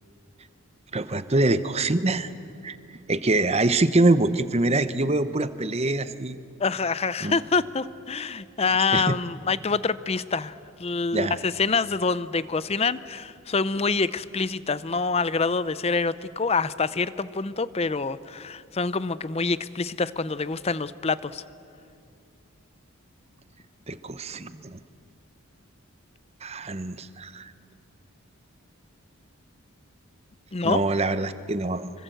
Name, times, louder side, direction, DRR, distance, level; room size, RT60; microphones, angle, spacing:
voice 1, 0.9-2.3 2.6-6.4 7.2-7.4 8.9-9.2 11.1-11.4 23.9-24.8 26.4-27.5 30.6-31.9, right 2 dB, 30° right, 12 dB, 0.8 m, -24 dB
voice 2, 6.6-21.4 30.5-30.8, left 4 dB, 30° left, 16 dB, 0.6 m, -26 dB
26.0 x 24.0 x 7.9 m, 2.6 s
head